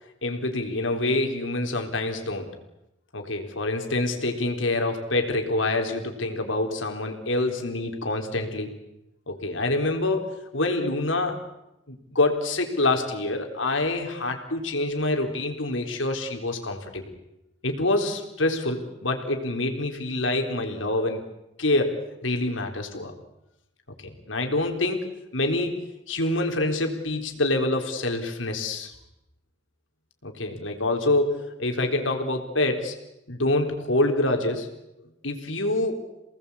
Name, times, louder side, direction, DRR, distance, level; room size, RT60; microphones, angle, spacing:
voice 1, 0.2-2.5 3.1-8.7 9.3-11.4 11.9-17.0 17.6-21.2 21.6-23.1 24.0-25.0 25.3-25.7 26.1-28.9 30.2-32.9 33.3-34.7 35.2-35.9, left 2 dB, 90° left, 4 dB, 4.0 m, -26 dB
28.5 x 19.0 x 8.5 m, 0.90 s
head